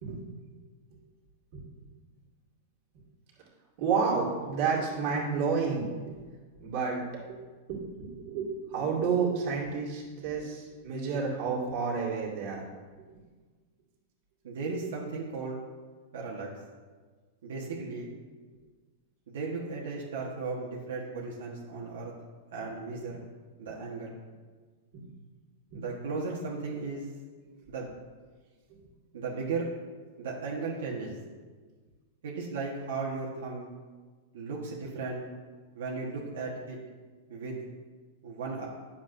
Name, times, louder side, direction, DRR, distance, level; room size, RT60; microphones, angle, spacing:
voice 1, 3.8-6.1 6.6-7.4 7.7-12.6 24.9-25.0 25.7-25.8, right 5 dB, 45° right, -4 dB, 2.1 m, -30 dB
voice 2, 14.4-15.6 16.1-16.5 17.4-18.1 19.3-22.1 22.5-23.2 23.6-24.2 25.7-27.1 27.7-27.9 29.1-29.7 30.2-31.1 32.2-33.7 34.3-35.2 35.7-36.8 37.3-37.6 38.2-38.7, right 4 dB, 80° right, -3 dB, 1.3 m, -36 dB
9.8 x 7.1 x 2.6 m, 1.4 s
supercardioid pair, 160°, 0 cm